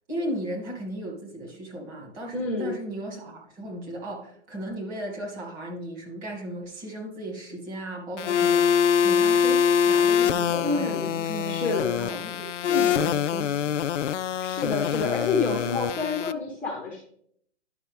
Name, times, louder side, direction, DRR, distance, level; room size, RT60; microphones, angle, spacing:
voice 1, 0.1-8.7 8.9-11.6 11.9-13.8, right 1 dB, 25° right, -1 dB, 2.3 m, -36 dB
voice 2, 2.3-2.7 10.6-11.1 11.4-12.2 14.4-17.0, left 3 dB, 5° left, -4 dB, 1.1 m, -28 dB
sound 1, 8.2-16.3, left 8 dB, 80° left, 0.5 m, -24 dB
11.0 x 5.8 x 3.5 m, 0.66 s
hypercardioid pair, 145°, 35 cm